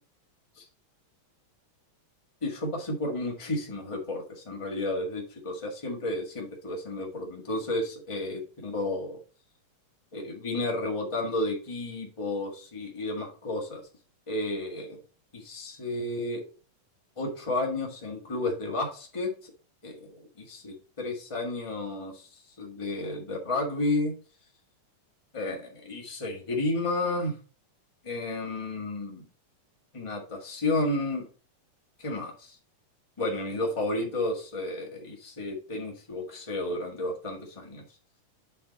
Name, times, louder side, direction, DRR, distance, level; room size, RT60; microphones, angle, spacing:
voice 1, 2.4-9.2 10.1-13.8 14.3-15.0 15.3-16.4 17.2-19.3 19.8-22.3 22.6-24.2 25.3-27.3 28.0-29.2 29.9-31.2 32.0-32.6 33.2-37.8, left 2 dB, 55° left, 0 dB, 0.3 m, -32 dB
8.3 x 4.3 x 4.0 m, 0.37 s
omnidirectional pair, 3.8 m